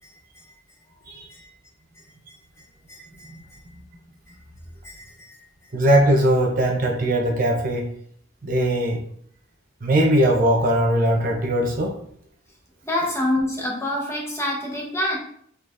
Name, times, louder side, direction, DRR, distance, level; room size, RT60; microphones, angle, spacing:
voice 1, 2.9-3.3 4.8-5.1 12.9-15.2, left 1 dB, 15° left, -2 dB, 1.0 m, -26 dB
voice 2, 5.7-7.9 8.4-9.0 9.8-12.0, right 1 dB, 45° right, 1 dB, 0.7 m, -20 dB
5.0 x 3.8 x 2.6 m, 0.63 s
head